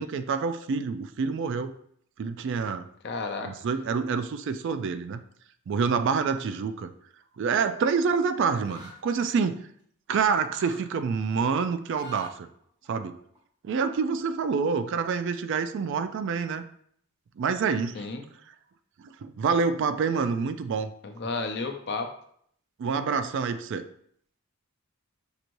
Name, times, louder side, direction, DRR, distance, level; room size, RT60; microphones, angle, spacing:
voice 1, 0.0-1.7 2.2-2.9 3.4-5.2 5.7-6.9 7.4-9.6 10.1-12.5 12.9-13.2 13.6-16.6 17.4-18.1 19.2-20.9 22.8-23.8, right 5 dB, 55° right, 10 dB, 0.3 m, -27 dB
voice 2, 3.0-3.5 17.9-18.2 21.0-22.1, left 3 dB, 50° left, 4 dB, 0.6 m, -32 dB
sound 1, 8.6-9.0 10.1-10.3 10.5-10.8 11.8-12.3 12.6-13.4, equal, 20° right, 0.9 m, -46 dB
6.5 x 3.0 x 2.6 m, 0.65 s
head